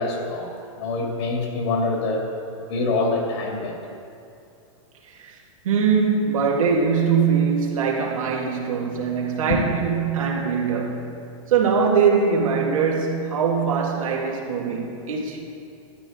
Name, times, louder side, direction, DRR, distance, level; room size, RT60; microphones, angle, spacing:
voice 1, 0.0-2.3 2.6-3.7 9.5-9.6, left 3 dB, 55° left, 0 dB, 2.3 m, -25 dB
voice 2, 5.1-5.4 5.6-11.2 11.5-15.4, right 6 dB, 85° right, -1 dB, 1.9 m, -22 dB
12.5 x 10.5 x 3.8 m, 2.6 s
supercardioid pair, 155°, 17 cm